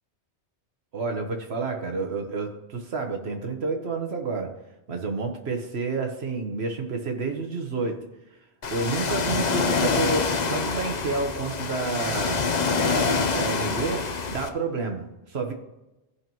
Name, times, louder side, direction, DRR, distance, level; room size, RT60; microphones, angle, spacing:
voice 1, 0.9-4.5 4.9-8.0 8.7-15.5, right 3 dB, 65° right, 4 dB, 1.5 m, -30 dB
Ocean, 8.6-14.5, left 4 dB, 45° left, 0.7 m, -26 dB
14.5 x 5.4 x 3.0 m, 0.99 s
omnidirectional pair, 1.2 m